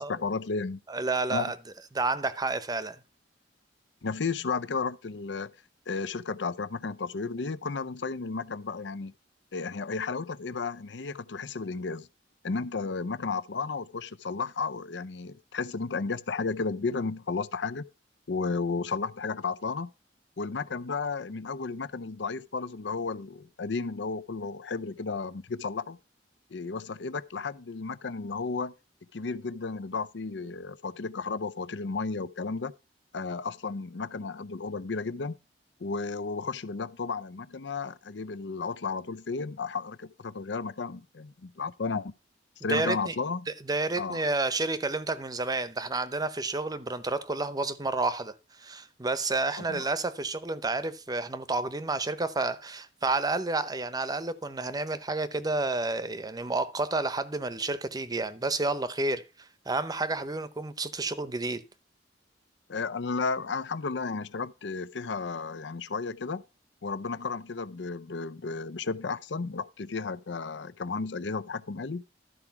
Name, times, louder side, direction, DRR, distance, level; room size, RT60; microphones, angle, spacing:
voice 1, 0.0-0.8 1.3-1.5 4.0-5.5 5.9-9.1 9.5-12.1 12.4-17.8 18.3-19.9 20.4-26.0 26.5-28.7 29.1-32.7 33.1-35.4 35.8-42.1 42.6-43.5 44.0-44.2 49.6-49.9 62.7-66.4 66.8-72.0, left 4 dB, 75° left, 0.6 m, -33 dB
voice 2, 0.9-1.6 1.9-3.0 42.6-43.2 43.5-61.6, right 3 dB, 20° right, 0.8 m, -30 dB
13.0 x 4.8 x 5.8 m
head